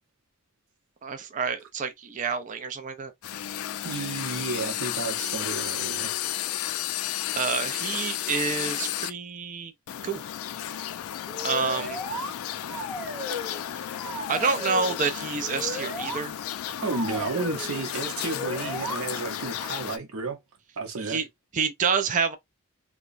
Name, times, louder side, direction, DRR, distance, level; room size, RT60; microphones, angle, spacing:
voice 1, 1.0-3.1 7.4-9.7 10.0-10.2 11.4-12.0 14.3-16.3 21.0-21.3 21.5-22.4, right 5 dB, 35° right, 0.4 m, -28 dB
sound 1, 3.2-9.1 9.9-20.0, left 11 dB, 80° left, 0.3 m, -33 dB
voice 2, 3.8-6.1 16.8-20.4 20.8-21.2, right 3 dB, 80° right, 0.8 m, -32 dB
sound 2, 11.3-12.3 12.7-13.6 13.9-14.9 15.4-16.2 16.7-17.7 18.2-19.0, left 1 dB, 5° right, 0.8 m, -35 dB
2.9 x 2.2 x 2.4 m
head